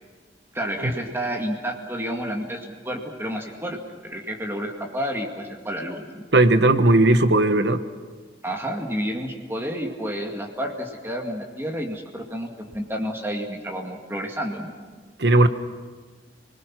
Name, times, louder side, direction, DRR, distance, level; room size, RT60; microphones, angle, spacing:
voice 1, 0.5-6.2 8.4-14.7, equal, 15° right, 1 dB, 2.1 m, -30 dB
voice 2, 6.3-7.8 15.2-15.5, right 2 dB, 70° right, 10 dB, 1.3 m, -17 dB
29.5 x 20.5 x 6.1 m, 1.5 s
head